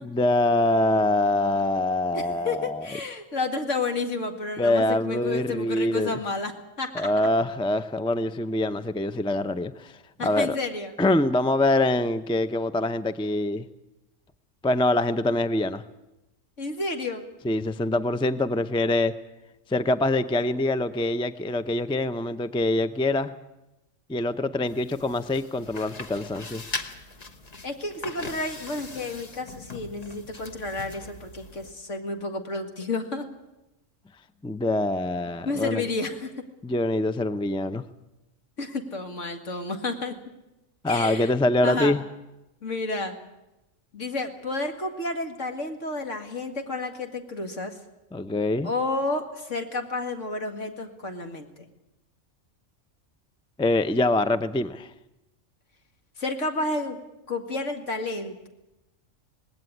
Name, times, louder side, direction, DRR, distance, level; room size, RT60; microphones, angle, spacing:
voice 1, 0.0-3.0 4.6-6.2 6.9-10.6 11.0-13.7 14.6-15.8 17.4-19.1 19.7-23.3 24.1-26.6 34.4-35.8 36.6-37.8 40.8-42.0 48.1-48.7 53.6-54.9, left 2 dB, 5° left, 12 dB, 0.4 m, -24 dB
voice 2, 2.1-6.5 6.8-7.1 10.2-10.9 16.6-17.2 27.6-33.3 35.4-36.3 38.6-40.2 40.9-41.3 41.6-41.9 42.6-43.2 43.9-47.8 48.6-51.6 56.2-57.0 57.3-58.5, left 3 dB, 70° left, 5 dB, 2.4 m, -31 dB
sound 1, 24.7-31.7, left 3 dB, 35° left, 1.2 m, -40 dB
19.0 x 17.0 x 9.9 m, 0.96 s
omnidirectional pair, 1.3 m